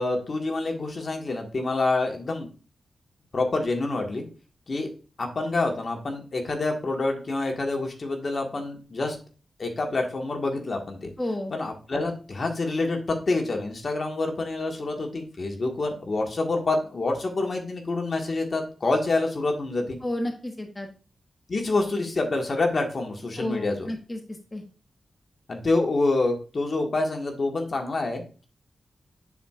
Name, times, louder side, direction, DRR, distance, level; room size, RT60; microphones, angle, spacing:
voice 1, 0.0-2.5 3.3-4.2 4.7-4.9 5.2-9.2 9.6-11.1 11.5-20.0 21.5-23.9 25.5-28.5, left 2 dB, 55° left, 3 dB, 1.6 m, -27 dB
voice 2, 11.2-11.5 20.0-20.9 23.4-24.2 24.5-24.6, left 1 dB, 25° left, 3 dB, 1.3 m, -31 dB
10.0 x 4.4 x 2.4 m, 0.36 s
cardioid pair, 55°, 0 cm